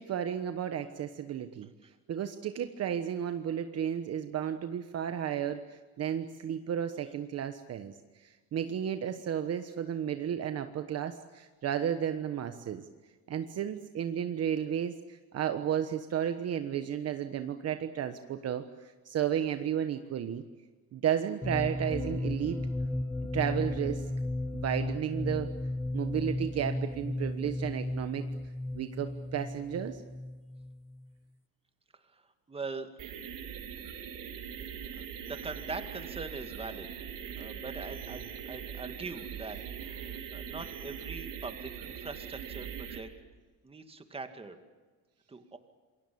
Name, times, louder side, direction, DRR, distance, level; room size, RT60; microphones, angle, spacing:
voice 1, 0.0-1.7 2.1-12.8 13.3-20.4 20.9-22.6 23.3-24.1 24.5-25.5 25.9-28.2 28.7-30.0, right 9 dB, 45° right, 8 dB, 1.3 m, -33 dB
sound 1, 21.4-31.1, left 1 dB, 5° left, 0.8 m, -35 dB
voice 2, 32.5-32.9 34.9-36.9 37.4-43.1 43.6-44.6 45.3-45.6, right 4 dB, 15° right, 8 dB, 2.3 m, -42 dB
sound 2, 33.0-43.0, right 8 dB, 60° right, 4.4 m, -41 dB
27.5 x 22.5 x 8.7 m, 1.3 s
cardioid pair, 150°, 36 cm